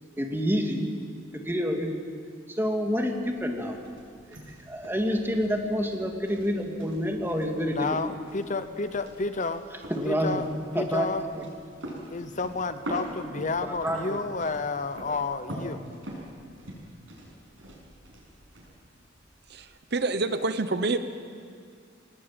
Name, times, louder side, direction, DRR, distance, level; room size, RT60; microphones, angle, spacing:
voice 1, 0.2-0.9 1.3-2.0 2.5-3.8 4.3-7.9 9.9-10.4 10.7-11.1 11.4-11.5 13.6-14.2, equal, 10° right, 2 dB, 2.3 m, -28 dB
sound 1, 2.7-19.7, right 1 dB, 85° right, 7.1 m, -43 dB
voice 2, 7.7-9.6 10.0-10.5 10.7-11.2 12.1-15.8, left 3 dB, 40° left, 11 dB, 0.8 m, -30 dB
voice 3, 19.5-21.0, right 3 dB, 55° right, 10 dB, 1.0 m, -27 dB
21.0 x 19.0 x 9.0 m, 2.2 s
head